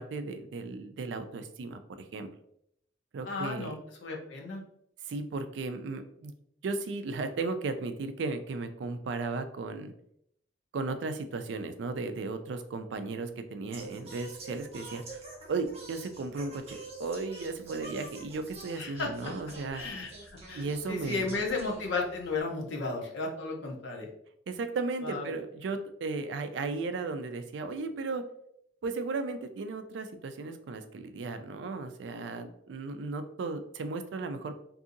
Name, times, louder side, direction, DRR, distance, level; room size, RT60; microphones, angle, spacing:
voice 1, 0.0-1.8 2.1-2.3 3.1-3.7 5.0-6.3 6.6-9.9 10.7-15.2 15.5-19.8 20.6-21.4 24.5-28.2 28.8-34.6, right 3 dB, 65° right, 9 dB, 0.3 m, -35 dB
voice 2, 3.2-3.8 4.0-4.6 18.8-19.3 19.7-24.1 25.0-25.3, left 3 dB, 80° left, 0 dB, 0.6 m, -34 dB
Singing, 13.7-22.4, right 3 dB, 35° right, 0.7 m, -47 dB
2.7 x 2.6 x 2.5 m, 0.72 s
head